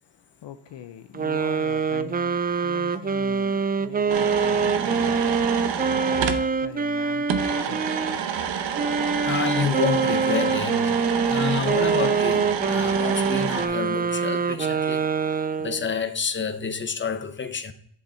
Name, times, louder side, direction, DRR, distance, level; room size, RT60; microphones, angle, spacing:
voice 1, 0.0-8.9, left 9 dB, 60° left, 0.6 m, -43 dB
sound 1, 1.1-8.2 8.8-15.9, right 5 dB, 20° right, 0.4 m, -25 dB
sound 2, 4.1-6.4 7.3-13.7, right 7 dB, 65° right, 0.8 m, -28 dB
voice 2, 9.2-10.9 11.3-17.7, left 6 dB, 25° left, 0.7 m, -29 dB
7.7 x 3.5 x 4.2 m
supercardioid pair, 45°, 48 cm